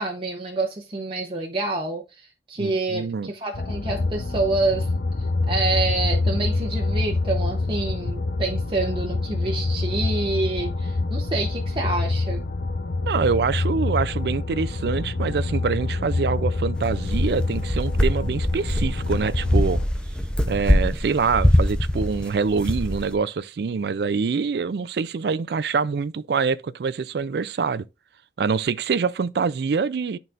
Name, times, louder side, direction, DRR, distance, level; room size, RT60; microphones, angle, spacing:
voice 1, 0.0-4.9 5.5-12.4, right 2 dB, 30° right, 0.8 m, -27 dB
voice 2, 2.6-3.3 13.1-19.8 20.5-27.9 28.4-30.2, right 5 dB, 65° right, 0.4 m, -25 dB
sound 1, 3.5-19.9, left 3 dB, 70° left, 0.7 m, -26 dB
sound 2, 16.8-23.1, left 1 dB, 5° left, 0.6 m, -23 dB
11.0 x 4.0 x 2.5 m
head